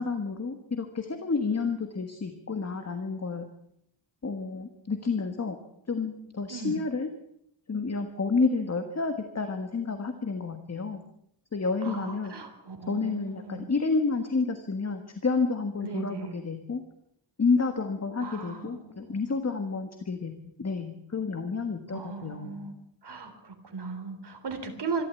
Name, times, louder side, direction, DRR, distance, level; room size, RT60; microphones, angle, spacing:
voice 1, 0.0-3.5 4.2-5.6 5.9-7.1 7.7-11.0 11.5-12.3 12.9-16.8 17.4-20.3 20.6-22.6, left 4 dB, 35° left, 7 dB, 1.6 m, -30 dB
voice 2, 6.5-6.8 11.8-13.7 15.8-16.4 18.2-19.3 21.9-22.7 23.0-25.0, right 4 dB, 60° right, 6 dB, 3.6 m, -37 dB
25.5 x 12.5 x 8.3 m, 0.75 s
wide cardioid pair, 170°, 47 cm